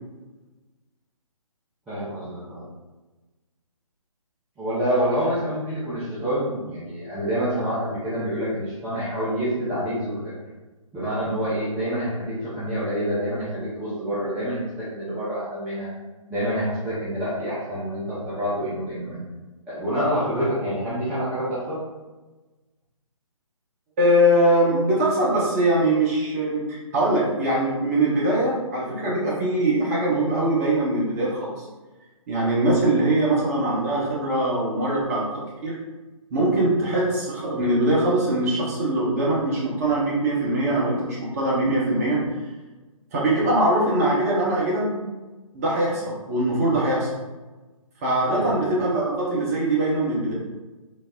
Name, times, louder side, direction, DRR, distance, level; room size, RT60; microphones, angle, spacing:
voice 1, 1.9-2.6 4.6-10.1 10.9-15.9 16.3-19.2 19.7-21.8 48.3-48.5, equal, 5° right, -12 dB, 0.5 m, -27 dB
voice 2, 24.0-31.6 32.3-35.3 35.6-35.8 36.3-42.2 43.1-45.0 45.5-47.1 48.0-50.3, right 1 dB, 25° right, -4 dB, 0.9 m, -22 dB
3.9 x 2.1 x 3.6 m, 1.2 s
figure-of-eight pair, 145°, 18 cm